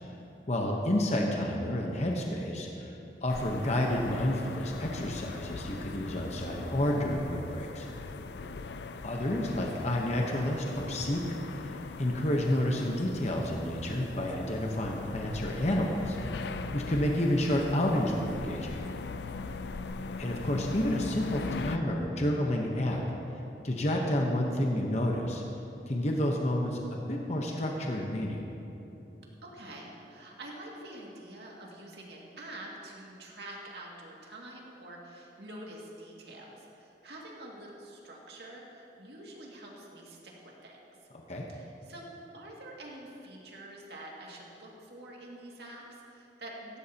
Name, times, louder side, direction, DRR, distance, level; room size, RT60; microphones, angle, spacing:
voice 1, 0.5-2.9 3.2-7.9 9.0-16.2 16.7-18.8 20.2-23.0 23.6-25.4 25.9-28.4 41.3-41.5, left 1 dB, 40° left, 0 dB, 1.0 m, -30 dB
sound 1, 3.3-21.8, left 3 dB, 70° left, 0.5 m, -40 dB
voice 2, 29.4-40.8 41.5-42.1 42.3-46.8, right 1 dB, 65° right, -3 dB, 2.3 m, -46 dB
16.0 x 15.0 x 2.9 m, 3.0 s
head